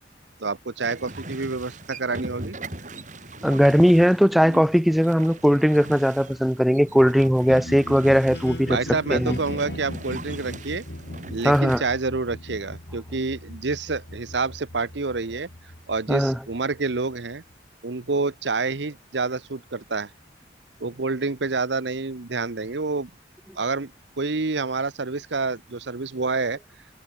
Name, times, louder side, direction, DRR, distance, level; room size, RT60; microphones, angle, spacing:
voice 1, 0.4-2.6 8.7-10.8 11.3-15.5 15.9-17.4 17.8-20.1 20.8-23.1 23.6-23.9 24.2-26.6, right 3 dB, 75° right, 1.0 m, -28 dB
sound 1, 0.8-11.8, right 2 dB, 45° right, 4.7 m, -40 dB
voice 2, 3.4-8.8 9.1-9.4 11.4-11.8 16.1-16.4, equal, ahead, 0.5 m, -19 dB
sound 2, 7.4-17.5, left 1 dB, 65° left, 2.7 m, -38 dB
head